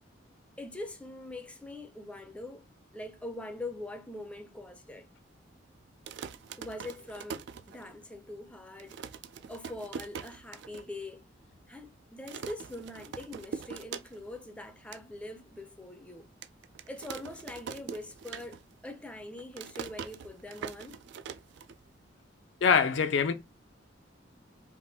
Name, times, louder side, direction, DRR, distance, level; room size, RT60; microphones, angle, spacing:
voice 1, 0.6-2.6 2.9-5.1 6.6-9.0 9.5-11.3 11.7-16.3 16.9-21.0, left 1 dB, 5° left, 0.4 m, -43 dB
sound 1, 5.9-8.2 8.5-8.6 8.8-10.9 11.2-11.3 11.5-11.9 12.3-14.4 14.7-15.0 15.6-15.7 16.4-18.9 19.1-22.1, right 6 dB, 65° right, 0.3 m, -43 dB
voice 2, 22.6-23.3, left 6 dB, 70° left, 0.4 m, -24 dB
3.4 x 2.5 x 2.7 m
head